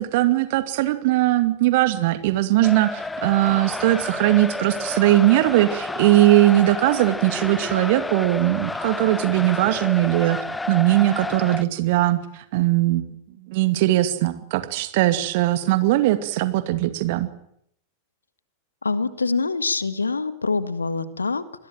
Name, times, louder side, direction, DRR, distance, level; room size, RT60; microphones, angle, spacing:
voice 1, 0.0-10.4 10.7-12.2 12.5-13.1 13.5-17.3, right 16 dB, 50° right, 11 dB, 2.3 m, -20 dB
sound 1, 2.6-11.6, left 2 dB, 10° left, 0.9 m, -30 dB
voice 2, 18.8-21.7, left 4 dB, 75° left, 14 dB, 1.6 m, -25 dB
27.0 x 21.0 x 7.7 m, 0.71 s
figure-of-eight pair, 90°, 0 cm